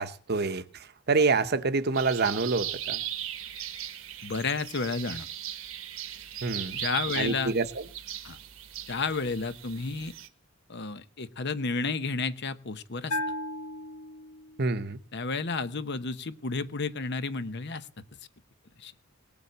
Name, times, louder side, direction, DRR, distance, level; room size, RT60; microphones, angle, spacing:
voice 1, 0.0-3.0 6.4-6.8 7.2-7.7 14.6-15.0, right 4 dB, 50° right, 11 dB, 1.0 m, -27 dB
sound 1, 1.9-10.3, right 11 dB, 70° right, 1.3 m, -38 dB
voice 2, 4.2-5.3 6.7-7.5 8.2-8.4 8.9-10.1 10.7-13.2 15.1-17.9 18.8-18.9, left 4 dB, 55° left, 12 dB, 0.9 m, -31 dB
Bell, 13.1-14.7, left 1 dB, 85° left, 2.6 m, -35 dB
19.0 x 7.1 x 8.0 m, 0.43 s
head